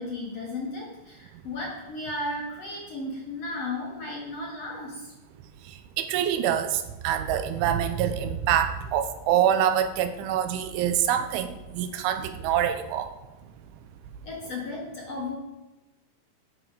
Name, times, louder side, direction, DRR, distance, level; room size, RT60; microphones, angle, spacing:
voice 1, 0.0-5.1 14.2-15.4, left 2 dB, 40° left, -3 dB, 2.5 m, -34 dB
voice 2, 6.0-13.1, right 9 dB, 85° right, 9 dB, 3.3 m, -25 dB
13.0 x 10.5 x 5.0 m, 1.1 s
omnidirectional pair, 5.6 m